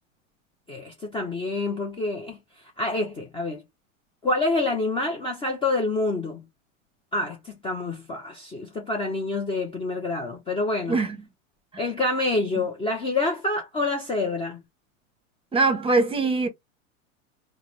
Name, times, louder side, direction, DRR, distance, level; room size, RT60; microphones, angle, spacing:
voice 1, 0.7-2.4 2.8-3.6 4.2-6.4 7.1-11.0 11.8-14.6, left 2 dB, 15° left, 0.5 m, -27 dB
voice 2, 15.5-16.5, right 3 dB, 15° right, 0.9 m, -22 dB
3.6 x 2.1 x 3.0 m
hypercardioid pair, 115°, 40 cm